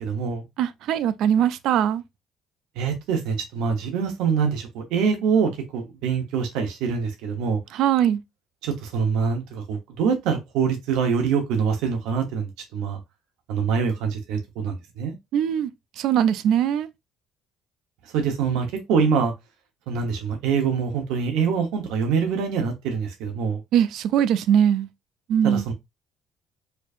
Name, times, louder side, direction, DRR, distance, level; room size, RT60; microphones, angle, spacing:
voice 1, 0.0-0.4 2.8-7.6 8.6-13.0 13.5-15.1 18.1-19.3 19.9-23.6 25.4-25.7, right 6 dB, 90° right, 0.8 m, -25 dB
voice 2, 0.6-2.0 7.7-8.2 15.3-15.7 16.0-16.9 23.7-24.9 25.3-25.6, right 9 dB, 60° right, 0.3 m, -21 dB
4.4 x 2.6 x 2.4 m
cardioid pair, 175°, 0 cm